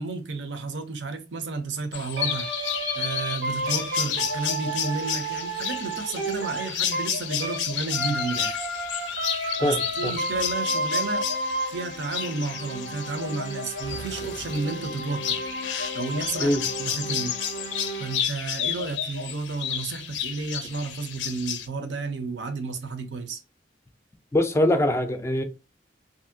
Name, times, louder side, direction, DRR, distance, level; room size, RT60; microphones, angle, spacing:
voice 1, 0.0-2.5 2.9-8.6 9.6-11.3 11.7-15.4 15.9-17.4 18.0-23.4, right 4 dB, 75° right, 0.6 m, -32 dB
sound 1, 1.9-21.7, left 9 dB, 80° left, 0.4 m, -32 dB
sound 2, 2.2-7.6 7.9-18.2, right 1 dB, 90° right, 1.0 m, -32 dB
voice 2, 9.6-10.1 16.4-16.6 24.3-25.4, left 1 dB, 15° left, 0.4 m, -23 dB
2.7 x 2.7 x 2.6 m
head